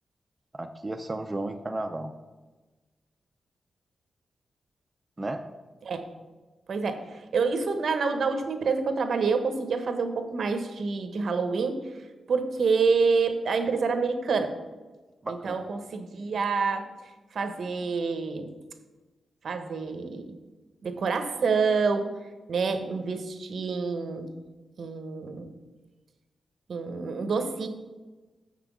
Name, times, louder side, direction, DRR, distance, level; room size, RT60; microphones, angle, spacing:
voice 1, 0.5-2.1 5.2-5.4 15.2-15.6, right 2 dB, 20° right, 5 dB, 0.4 m, -33 dB
voice 2, 6.7-14.5 15.3-18.5 19.4-20.4 20.8-22.1 22.5-24.3 24.8-25.5 26.7-27.7, right 4 dB, 65° right, 8 dB, 0.9 m, -27 dB
7.2 x 5.9 x 6.0 m, 1.2 s
wide cardioid pair, 130°, 0 cm